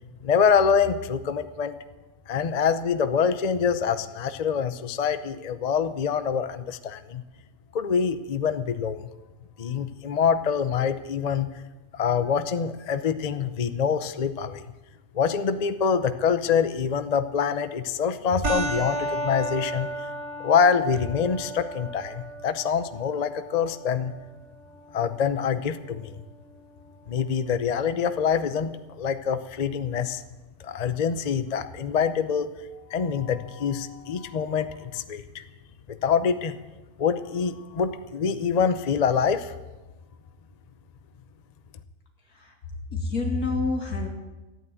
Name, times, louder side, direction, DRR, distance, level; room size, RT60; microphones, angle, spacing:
voice 1, 0.2-1.7 2.3-7.2 7.7-9.0 9.6-11.5 11.9-14.6 15.1-19.9 20.4-24.1 24.9-26.1 27.1-30.2 30.6-32.5 32.9-35.4 35.9-36.6 37.0-39.5, left 6 dB, 50° left, 11 dB, 0.4 m, -25 dB
sound 1, 18.4-27.4, right 1 dB, 75° right, 3.2 m, -35 dB
voice 2, 42.9-44.1, left 3 dB, 65° left, 2 dB, 2.7 m, -27 dB
14.0 x 9.2 x 9.1 m, 1.1 s
omnidirectional pair, 1.7 m